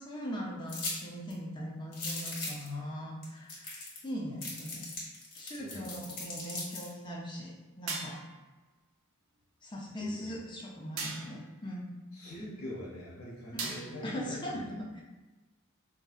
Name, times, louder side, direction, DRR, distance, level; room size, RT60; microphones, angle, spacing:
voice 1, 0.0-3.7 4.0-4.8 5.4-8.2 9.6-11.9 13.5-13.7 14.0-15.0, equal, 20° left, -3 dB, 0.5 m, -40 dB
sound 1, 0.7-1.0 1.3-1.4 1.9-2.7 3.2-3.3 3.5-4.1 4.4-6.9, left 3 dB, 45° left, 1.1 m, -39 dB
voice 2, 5.6-5.9 10.0-10.4 12.1-14.8, left 1 dB, 70° left, -5 dB, 0.7 m, -44 dB
sound 2, 7.9-8.5 11.0-11.5 13.6-14.2, right 3 dB, 65° right, 0.5 m, -39 dB
4.5 x 2.6 x 2.4 m, 1.2 s
head